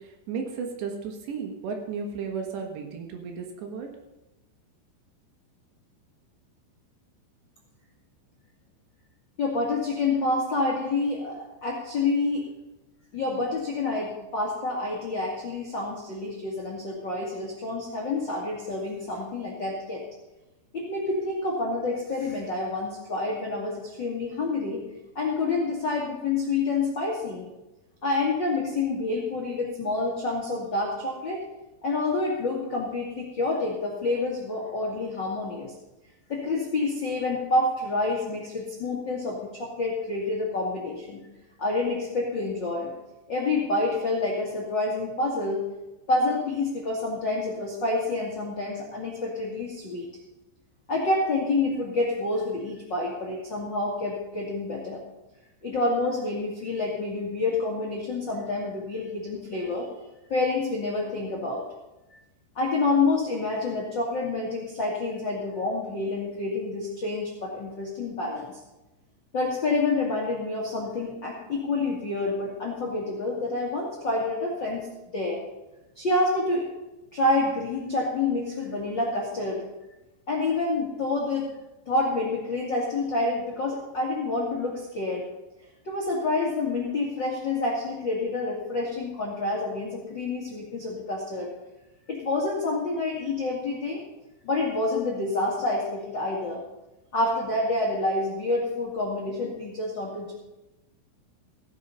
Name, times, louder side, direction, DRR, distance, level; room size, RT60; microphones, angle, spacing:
voice 1, 0.0-3.9, right 5 dB, 70° right, 3 dB, 3.5 m, -34 dB
voice 2, 9.4-12.4 13.1-20.0 20.7-24.8 25.1-27.5 28.0-31.4 31.8-35.7 36.3-41.2 41.6-42.9 43.3-45.7 46.1-50.1 50.9-55.0 55.6-59.9 60.3-61.6 62.5-68.6 69.3-74.9 75.1-75.4 75.9-76.7 77.1-79.6 80.3-81.5 81.8-85.3 85.8-91.5 92.1-94.0 94.4-96.6 97.1-100.3, left 2 dB, 55° left, -3 dB, 1.2 m, -28 dB
16.0 x 7.6 x 5.6 m, 1.0 s
omnidirectional pair, 5.4 m